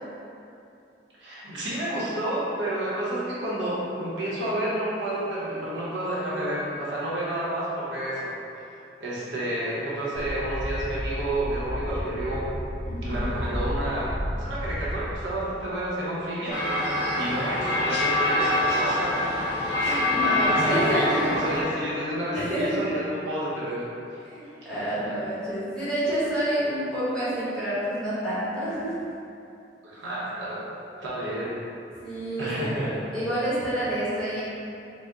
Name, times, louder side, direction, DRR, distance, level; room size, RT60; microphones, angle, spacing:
voice 1, 1.2-8.3 9.0-12.5 13.0-16.6 17.1-19.2 20.5-23.8 29.8-30.6 31.0-31.6 32.4-33.0, right 1 dB, 90° right, -8 dB, 1.0 m, -30 dB
sound 1, 10.1-15.2, equal, 90° left, 0.6 m, -32 dB
voice 2, 12.9-13.2 19.8-21.3 22.3-22.8 24.2-28.9 32.0-32.7 33.1-34.4, right 1 dB, 5° left, -12 dB, 1.0 m, -28 dB
sound 2, 16.5-21.6, left 1 dB, 30° left, 1.5 m, -25 dB
4.0 x 2.1 x 3.6 m, 2.7 s
head